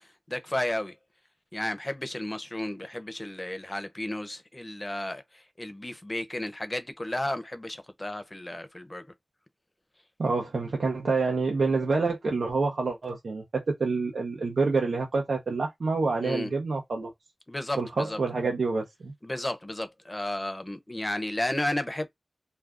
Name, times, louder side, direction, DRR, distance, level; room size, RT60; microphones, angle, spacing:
voice 1, 0.3-0.9 1.5-5.2 5.6-9.0 16.2-16.5 17.5-18.2 19.2-22.1, left 1 dB, 20° left, 0.6 m, -33 dB
voice 2, 10.2-17.1 17.8-19.1, right 4 dB, 90° right, 0.6 m, -27 dB
2.5 x 2.3 x 3.4 m
wide cardioid pair, 65°, 0 cm